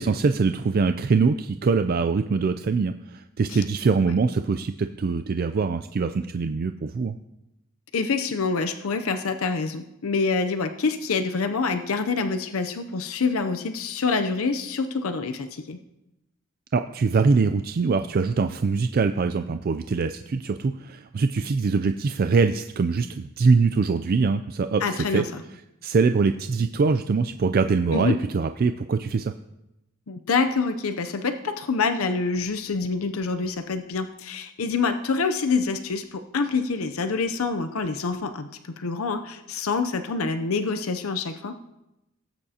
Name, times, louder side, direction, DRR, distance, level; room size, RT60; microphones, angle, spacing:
voice 1, 0.0-7.2 16.7-25.2 25.8-29.3, right 4 dB, 45° right, 8 dB, 0.4 m, -23 dB
voice 2, 7.9-15.8 24.8-25.4 27.9-28.2 30.1-38.5 38.8-41.5, left 4 dB, 85° left, 8 dB, 0.6 m, -26 dB
18.0 x 9.0 x 2.8 m, 0.92 s
head